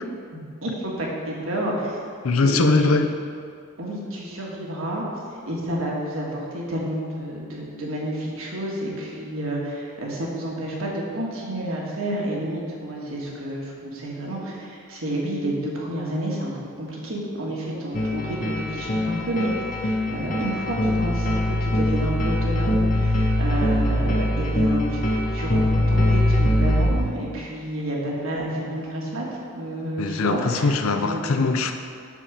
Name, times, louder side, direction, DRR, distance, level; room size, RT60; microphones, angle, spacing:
voice 1, 0.3-2.0 2.4-2.9 3.8-5.0 5.5-16.5 16.8-19.5 19.8-29.2 29.5-31.2, right 1 dB, 75° right, -3 dB, 1.5 m, -30 dB
voice 2, 2.2-3.2 30.0-31.7, left 3 dB, 80° left, 7 dB, 0.5 m, -21 dB
sound 1, 17.9-26.9, left 1 dB, 35° left, 0.7 m, -22 dB
7.1 x 3.9 x 6.0 m, 2.2 s
head